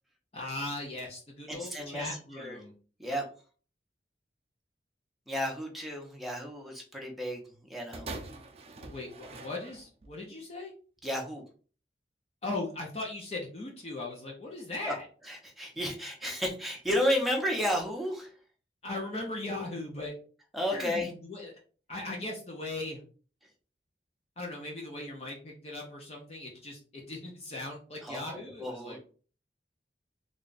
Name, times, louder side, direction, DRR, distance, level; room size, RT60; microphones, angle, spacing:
voice 1, 0.3-2.7 8.8-10.7 12.4-15.1 18.8-20.1 20.7-21.5 21.9-23.0 24.4-29.0, left 2 dB, 35° left, -1 dB, 0.7 m, -38 dB
voice 2, 1.5-2.6 3.0-3.2 5.3-7.4 7.7-8.1 11.0-11.4 14.8-14.9 15.2-18.3 20.5-21.1 28.0-29.0, equal, ahead, 0 dB, 0.8 m, -32 dB
sound 1, 7.9-10.2 11.0-11.1, right 3 dB, 35° right, 0.5 m, -44 dB
3.4 x 2.4 x 3.9 m, 0.40 s
head